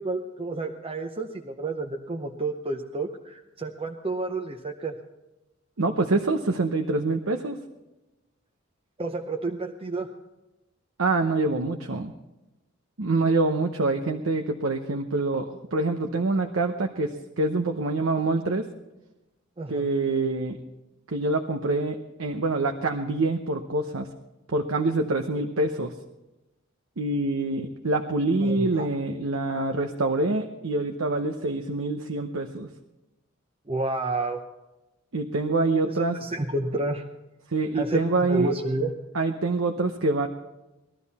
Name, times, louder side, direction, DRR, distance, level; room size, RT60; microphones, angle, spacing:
voice 1, 0.0-5.0 9.0-10.1 19.6-19.8 28.4-28.9 33.7-34.4 35.8-37.0 37.7-38.9, right 2 dB, 30° right, 2 dB, 0.8 m, -30 dB
voice 2, 5.8-7.6 11.0-12.1 13.0-18.6 19.7-20.6 21.1-24.1 24.5-25.9 27.0-32.7 35.1-36.2 37.5-38.5 39.1-40.3, right 2 dB, 80° right, 4 dB, 0.9 m, -25 dB
20.5 x 13.0 x 4.2 m, 1.0 s
head